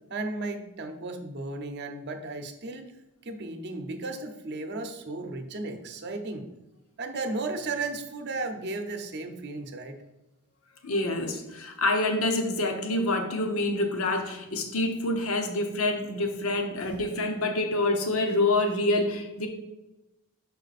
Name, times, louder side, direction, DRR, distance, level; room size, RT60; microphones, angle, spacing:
voice 1, 0.1-2.9 3.2-6.5 7.0-10.0, right 3 dB, 50° right, 6 dB, 0.7 m, -34 dB
voice 2, 10.8-19.5, left 2 dB, 70° left, 4 dB, 0.9 m, -27 dB
5.9 x 4.4 x 4.1 m, 0.96 s
head